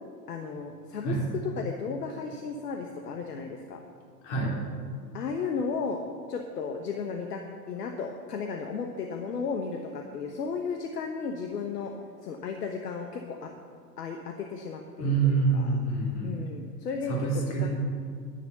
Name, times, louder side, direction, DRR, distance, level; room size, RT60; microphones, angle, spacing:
voice 1, 0.3-1.2 1.6-3.8 5.1-6.0 6.3-7.4 7.7-11.9 12.2-13.5 14.0-15.7 16.2-17.3 17.6-17.7, left 5 dB, 70° left, 4 dB, 1.3 m, -34 dB
voice 2, 4.2-4.6 15.0-16.3 17.1-17.7, right 4 dB, 50° left, -2 dB, 3.9 m, -26 dB
10.5 x 10.5 x 6.9 m, 2.2 s
figure-of-eight pair, 95°, 49 cm